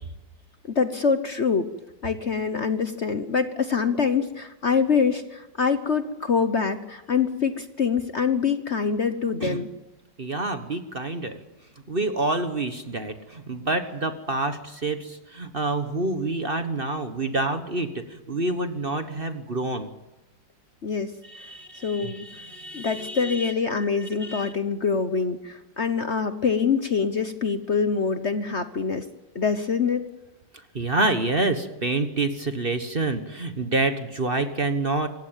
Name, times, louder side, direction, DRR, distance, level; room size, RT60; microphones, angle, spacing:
voice 1, 0.7-1.7 2.0-9.7 20.8-21.1 21.8-22.2 22.7-29.0 29.3-30.0, left 5 dB, 45° left, 10 dB, 1.2 m, -25 dB
voice 2, 10.2-11.4 11.9-19.9 21.2-24.5 30.7-35.1, right 2 dB, 35° right, 9 dB, 1.3 m, -28 dB
26.0 x 16.0 x 9.1 m, 1.0 s
omnidirectional pair, 2.0 m